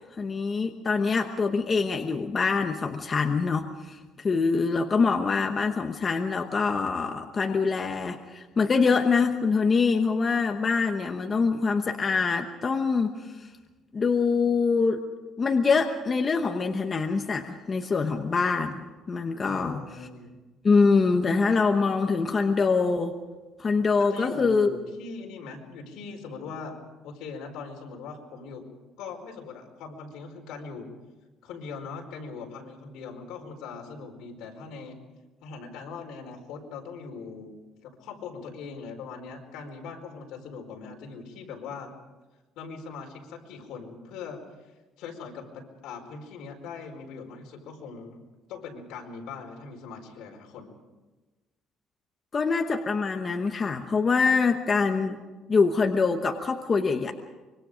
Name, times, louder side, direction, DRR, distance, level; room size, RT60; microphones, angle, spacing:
voice 1, 0.2-13.5 13.9-15.0 15.4-19.8 20.6-23.2 23.6-24.7 52.3-55.2 55.5-57.1, left 4 dB, 25° left, 5 dB, 1.0 m, -24 dB
voice 2, 19.4-20.4 24.0-28.6 29.0-30.9 31.4-35.0 35.4-41.9 42.5-44.4 45.0-48.2 48.5-50.7, left 5 dB, 75° left, 1 dB, 4.9 m, -41 dB
25.0 x 23.5 x 5.1 m, 1.2 s
cardioid pair, 165°, 0 cm